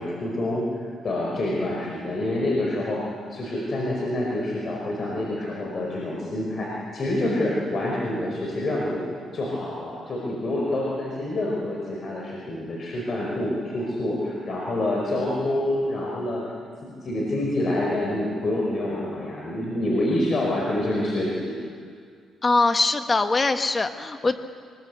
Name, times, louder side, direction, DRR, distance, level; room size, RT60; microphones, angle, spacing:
voice 1, 0.0-3.0 3.3-9.0 9.3-16.4 16.8-21.6, left 1 dB, 45° left, -3 dB, 5.0 m, -27 dB
voice 2, 22.4-24.4, left 3 dB, 30° left, 8 dB, 1.5 m, -22 dB
24.0 x 21.0 x 8.2 m, 2.1 s
cardioid pair, 90°, 0 cm